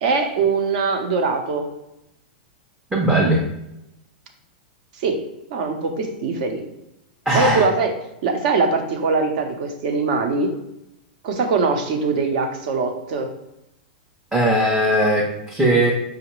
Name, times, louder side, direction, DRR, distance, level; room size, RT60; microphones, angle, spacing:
voice 1, 0.0-1.7 5.0-5.2 5.5-6.6 7.3-7.9 8.2-10.5 11.2-13.3, right 4 dB, 55° right, 5 dB, 0.7 m, -22 dB
voice 2, 2.9-3.4 7.3-7.6 14.3-15.9, right 1 dB, 5° right, -3 dB, 0.5 m, -18 dB
4.9 x 2.1 x 3.0 m, 0.87 s
supercardioid pair, 145°, 5 cm